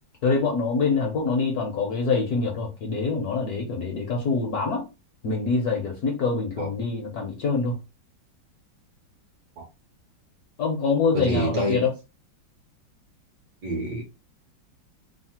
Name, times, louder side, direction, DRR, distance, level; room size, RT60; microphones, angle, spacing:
voice 1, 0.2-4.8 5.2-7.8 10.6-11.9, left 4 dB, 65° left, 1.0 m, -25 dB
voice 2, 11.1-11.8 13.6-14.0, right 1 dB, 65° right, 1.0 m, -27 dB
3.2 x 2.0 x 2.8 m
omnidirectional pair, 2.2 m